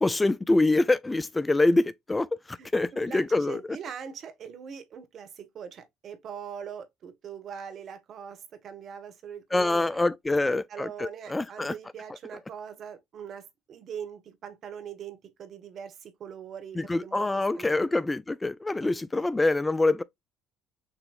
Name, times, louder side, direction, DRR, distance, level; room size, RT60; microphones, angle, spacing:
voice 1, 0.0-3.6 9.5-11.7 16.8-20.0, left 2 dB, 15° left, 0.3 m, -25 dB
voice 2, 2.6-10.0 10.4-17.8 18.8-19.3, right 7 dB, 55° right, 1.3 m, -42 dB
6.6 x 3.0 x 2.4 m
supercardioid pair, 70°, 0 cm